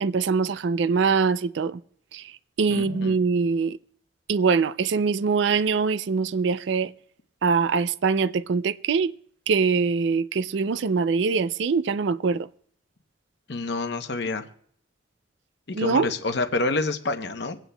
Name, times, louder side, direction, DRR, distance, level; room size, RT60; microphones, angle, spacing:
voice 1, 0.0-1.8 2.1-3.8 4.3-6.9 7.4-9.1 9.5-12.5 15.7-16.1, right 5 dB, 70° right, 0.4 m, -23 dB
voice 2, 2.7-3.2 13.5-14.4 15.7-17.6, left 3 dB, 60° left, 0.8 m, -28 dB
26.5 x 9.0 x 2.2 m
head